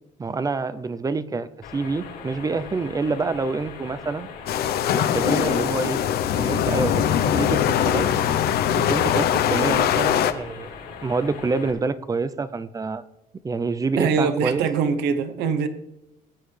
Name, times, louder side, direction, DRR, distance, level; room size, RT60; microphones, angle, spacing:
voice 1, 0.2-4.3 4.9-6.0 6.4-8.1 8.8-10.7 11.0-13.0 13.4-14.7, right 4 dB, 20° right, 0.6 m, -27 dB
sound 1, 1.6-11.7, left 5 dB, 85° left, 4.1 m, -40 dB
sound 2, 4.5-10.3, left 10 dB, 70° left, 0.7 m, -22 dB
voice 2, 14.0-15.7, right 6 dB, 80° right, 1.0 m, -23 dB
19.0 x 8.3 x 3.3 m
cardioid pair, 110°, 17 cm